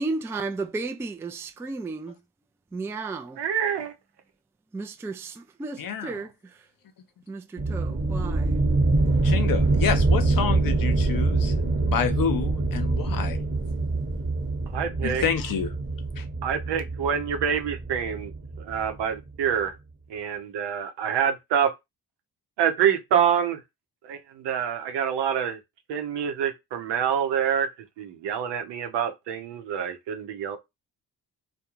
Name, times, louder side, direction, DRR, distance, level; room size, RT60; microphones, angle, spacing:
voice 1, 0.0-2.1 2.7-3.4 4.7-6.3 7.3-7.4 7.7-8.6, right 3 dB, 5° right, 0.3 m, -33 dB
voice 2, 3.4-3.9 14.7-15.2 16.4-18.3 18.6-19.7 20.1-21.7 22.6-23.6 24.0-25.6 25.9-27.7 28.0-30.6, right 8 dB, 75° right, 0.8 m, -26 dB
voice 3, 5.8-6.3 9.2-13.4 15.0-15.7 16.2-16.3, left 7 dB, 50° left, 0.7 m, -29 dB
sound 1, 7.6-19.0, right 3 dB, 25° right, 1.2 m, -25 dB
2.4 x 2.2 x 2.9 m
supercardioid pair, 55°, 42 cm